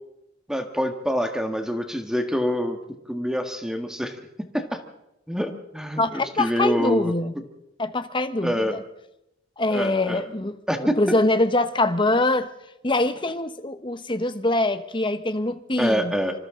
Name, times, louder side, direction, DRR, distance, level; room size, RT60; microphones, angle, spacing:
voice 1, 0.5-2.8 3.1-4.1 4.5-4.8 5.3-7.1 8.4-8.7 9.7-10.2 10.7-10.9 15.8-16.3, equal, 5° right, 1.7 m, -26 dB
voice 2, 6.0-7.3 7.8-8.8 9.6-12.5 12.8-16.1, left 2 dB, 25° left, 1.2 m, -24 dB
26.0 x 26.0 x 3.9 m
head